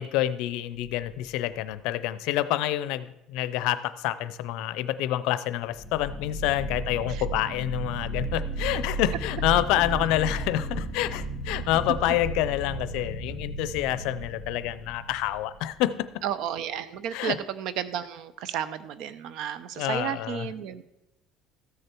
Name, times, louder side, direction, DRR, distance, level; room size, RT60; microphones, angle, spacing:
voice 1, 0.0-15.9 17.1-17.4 19.8-20.5, left 14 dB, 80° left, 14 dB, 0.6 m, -27 dB
sound 1, 0.7-1.3 5.7-15.9, right 2 dB, 25° right, 4.4 m, -34 dB
voice 2, 16.2-20.8, right 9 dB, 65° right, 15 dB, 0.7 m, -32 dB
14.0 x 6.5 x 4.5 m, 0.92 s
cardioid pair, 135°, 0 cm